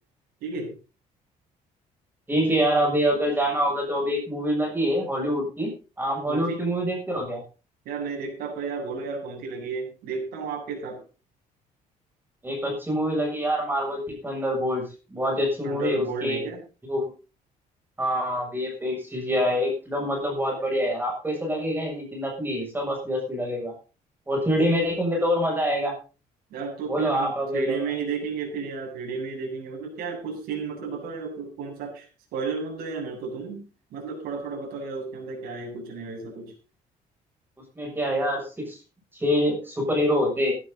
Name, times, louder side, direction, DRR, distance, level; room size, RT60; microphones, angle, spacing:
voice 1, 0.4-0.7 6.3-6.6 7.8-11.0 15.6-16.6 26.5-33.6 33.9-36.5, right 4 dB, 85° right, 1 dB, 7.8 m, -33 dB
voice 2, 2.3-5.7 6.0-7.4 12.4-14.8 15.1-16.4 16.9-17.1 18.0-23.7 24.3-25.9 26.9-27.8 37.8-38.8 39.1-40.5, equal, 15° right, 1 dB, 7.3 m, -25 dB
16.0 x 12.5 x 4.1 m, 0.33 s
cardioid pair, 125°, 15 cm